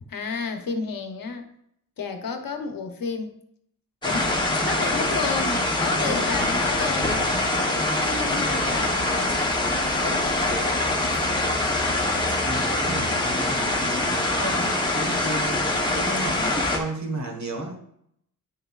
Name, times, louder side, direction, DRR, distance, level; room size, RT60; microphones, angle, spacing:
voice 1, 0.1-1.5 2.0-3.3 4.0-7.2 8.0-9.4 10.0-10.9, left 5 dB, 75° left, 5 dB, 1.0 m, -31 dB
sound 1, 4.0-16.8, left 2 dB, 15° left, 1.0 m, -24 dB
voice 2, 8.4-8.8 12.4-15.6 15.9-17.8, right 2 dB, 55° right, 2 dB, 1.5 m, -33 dB
9.9 x 6.3 x 2.4 m, 0.71 s
wide cardioid pair, 155°, 35 cm